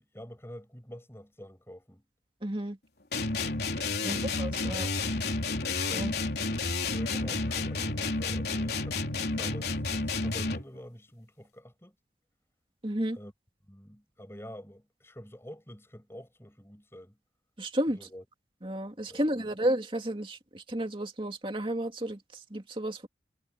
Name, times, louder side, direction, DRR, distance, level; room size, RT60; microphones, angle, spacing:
voice 1, 0.0-2.0 4.0-4.4 5.9-6.2 6.8-9.0 9.4-12.0 13.1-13.3 13.7-17.2 17.9-18.2 19.1-19.5, equal, 15° left, 7.1 m, -47 dB
voice 2, 2.4-2.8 4.0-4.9 5.9-6.1 12.8-13.2 17.6-18.1 18.6-23.1, right 1 dB, 30° right, 2.6 m, -32 dB
sound 1, 3.1-10.8, left 3 dB, 60° left, 3.8 m, -31 dB
head